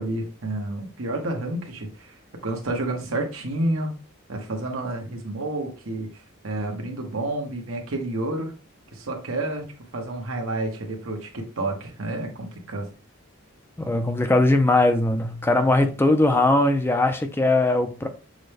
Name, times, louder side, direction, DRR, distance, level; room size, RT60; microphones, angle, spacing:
voice 1, 0.0-2.1 2.4-3.9 4.3-6.1 6.4-8.5 8.9-9.6 9.9-12.9, right 2 dB, 75° right, 1.1 m, -29 dB
voice 2, 13.8-18.1, left 2 dB, 10° left, 0.4 m, -20 dB
6.2 x 2.1 x 3.3 m
head